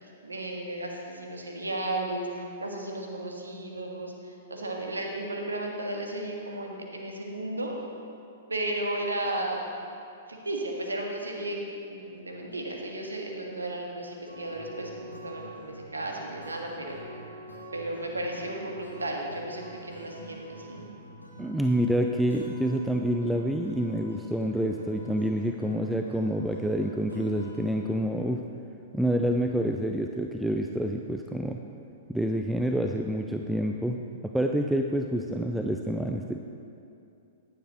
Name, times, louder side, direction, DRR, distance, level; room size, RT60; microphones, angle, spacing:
voice 1, 0.0-7.8 8.5-9.6 10.3-17.2 17.7-20.9, right 1 dB, 80° right, 0 dB, 1.7 m, -34 dB
sound 1, 14.3-28.0, equal, 85° left, 1.8 m, -44 dB
voice 2, 21.4-28.4 28.9-31.6 32.1-36.4, equal, 5° right, 3 dB, 0.4 m, -28 dB
15.0 x 10.5 x 3.1 m, 2.6 s
figure-of-eight pair, 110°, 0 cm